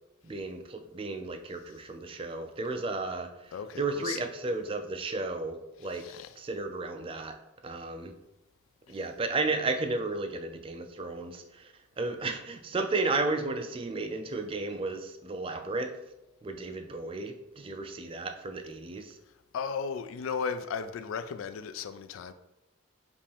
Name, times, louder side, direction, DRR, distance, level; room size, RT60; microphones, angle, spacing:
voice 1, 0.2-6.1 6.4-7.4 7.6-8.1 8.9-16.0 16.4-19.2, right 3 dB, 25° right, 0.3 m, -33 dB
voice 2, 3.5-4.2 5.9-6.3 19.5-22.3, left 6 dB, 80° left, 0.3 m, -35 dB
5.3 x 2.5 x 3.4 m
head